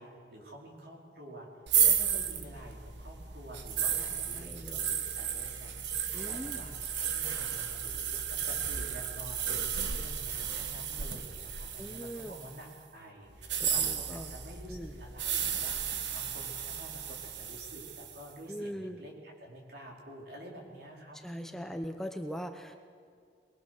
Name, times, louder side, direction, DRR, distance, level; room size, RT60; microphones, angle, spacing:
voice 1, 0.0-1.5 1.8-21.8, right 1 dB, 65° right, -1 dB, 4.5 m, -49 dB
sound 1, 1.7-12.6 13.4-18.2, right 8 dB, 85° right, 1.4 m, -33 dB
voice 2, 4.3-4.9 6.1-6.6 11.8-12.4 13.6-14.3 14.7-15.0 18.5-19.0 21.2-22.8, equal, ahead, 6 dB, 0.8 m, -40 dB
23.5 x 21.0 x 6.6 m, 2.2 s
head